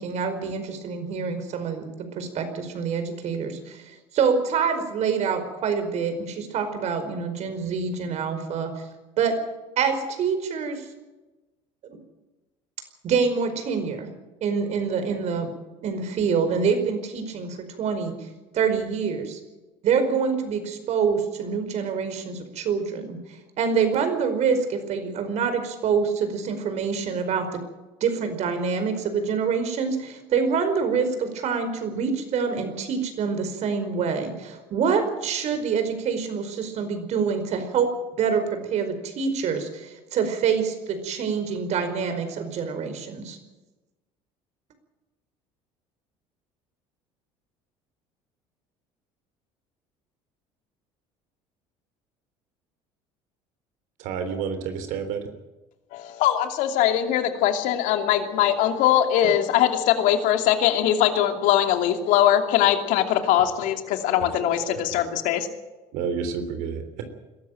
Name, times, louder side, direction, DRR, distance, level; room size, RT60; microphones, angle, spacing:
voice 1, 0.0-8.8 9.2-9.4 9.8-10.8 11.8-12.0 13.0-14.1 14.4-15.5 15.8-18.2 18.5-19.4 19.8-27.6 28.0-37.9 38.2-43.4, right 6 dB, 55° right, 9 dB, 4.8 m, -26 dB
voice 2, 54.0-55.2 65.9-67.0, right 6 dB, 75° right, 8 dB, 3.4 m, -29 dB
voice 3, 55.9-65.5, left 11 dB, 70° left, 6 dB, 2.8 m, -21 dB
22.0 x 13.5 x 9.2 m, 1.1 s
supercardioid pair, 90°, 14 cm